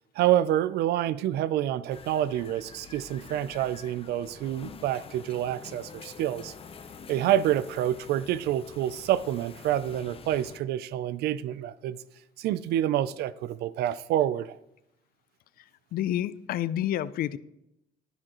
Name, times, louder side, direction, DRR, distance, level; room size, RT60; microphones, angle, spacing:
voice 1, 0.2-6.5 7.1-12.0 12.4-14.6, right 12 dB, 75° right, 17 dB, 0.4 m, -27 dB
sound 1, 1.9-10.6, left 6 dB, 35° left, 0.7 m, -47 dB
voice 2, 15.6-17.4, left 12 dB, 60° left, 17 dB, 0.4 m, -30 dB
10.5 x 10.0 x 3.0 m, 0.86 s
cardioid pair, 110°, 17 cm